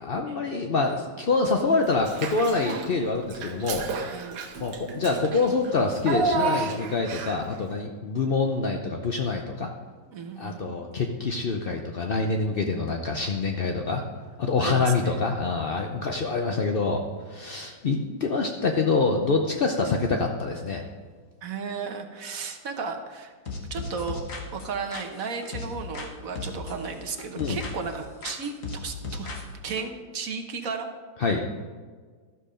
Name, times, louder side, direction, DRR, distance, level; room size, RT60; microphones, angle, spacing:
voice 1, 0.0-3.9 4.6-9.7 10.4-14.0 14.4-20.8 27.4-27.6 31.2-31.4, left 3 dB, 75° left, 3 dB, 0.5 m, -26 dB
Child speech kid speaking / Bathtub (filling or washing), 2.0-2.9 3.3-7.5, right 4 dB, 80° right, 1.7 m, -31 dB
voice 2, 4.0-4.4 10.1-10.6 14.6-15.2 21.4-23.3 23.7-24.2 24.5-30.9, right 5 dB, 55° right, 5 dB, 1.3 m, -34 dB
sound 1, 23.5-26.1 26.4-28.0 28.2-29.8, left 3 dB, 50° left, 1.6 m, -36 dB
12.5 x 7.1 x 5.0 m, 1.5 s
omnidirectional pair, 2.0 m